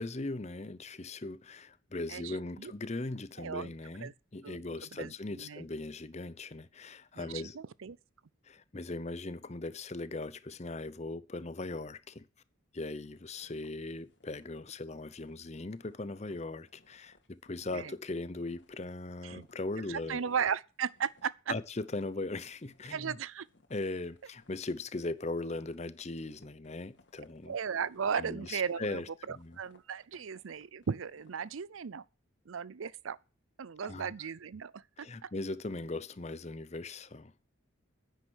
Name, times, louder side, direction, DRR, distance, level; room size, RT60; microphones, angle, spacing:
voice 1, 0.0-7.6 8.4-12.2 12.7-20.3 21.5-23.2 23.7-27.5 28.2-29.6 33.8-34.1 35.0-37.3, left 2 dB, 35° left, 0.7 m, -39 dB
voice 2, 2.1-2.7 3.4-3.7 4.0-4.1 4.4-4.6 4.9-5.7 7.2-8.0 17.7-17.9 19.2-19.5 19.9-21.5 22.9-23.5 27.5-29.0 29.3-32.0 32.5-33.2 33.6-35.3, right 7 dB, 85° right, 0.5 m, -36 dB
sound 1, 13.0-20.5 20.7-21.4 21.7-31.6, left 2 dB, 60° left, 2.3 m, -65 dB
10.0 x 9.2 x 6.3 m
head